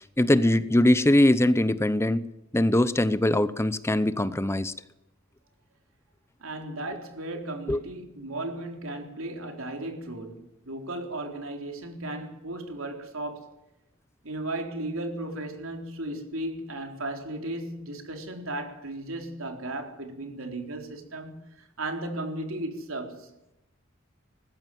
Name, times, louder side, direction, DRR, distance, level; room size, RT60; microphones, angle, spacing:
voice 1, 0.0-2.3 2.5-4.7 7.7-7.8, left 1 dB, 15° left, 0.7 m, -22 dB
voice 2, 6.4-13.5 14.2-23.3, right 1 dB, 75° right, 4.0 m, -35 dB
20.0 x 15.5 x 9.3 m
head